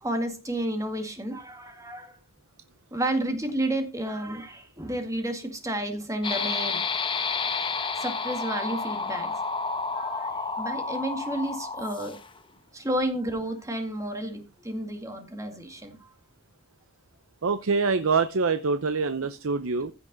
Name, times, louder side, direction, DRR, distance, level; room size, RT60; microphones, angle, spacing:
voice 1, 0.0-2.2 2.9-6.8 7.2-9.4 9.9-12.2 12.7-15.9, right 1 dB, 15° right, 2.0 m, -31 dB
sound 1, 6.2-12.4, left 4 dB, 25° left, 0.9 m, -30 dB
voice 2, 17.4-19.9, right 4 dB, 75° right, 0.7 m, -25 dB
15.5 x 6.1 x 3.9 m
head